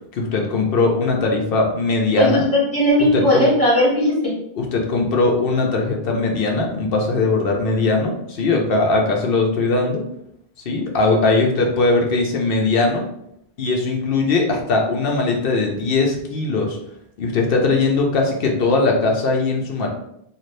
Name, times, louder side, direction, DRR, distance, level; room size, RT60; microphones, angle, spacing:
voice 1, 0.1-2.5 3.1-3.5 4.6-10.0 10.7-13.0 13.6-16.8 17.2-19.9, left 3 dB, 70° left, 1 dB, 0.8 m, -20 dB
voice 2, 2.2-4.3, left 1 dB, 35° left, -8 dB, 1.5 m, -17 dB
2.6 x 2.5 x 3.2 m, 0.76 s
omnidirectional pair, 1.0 m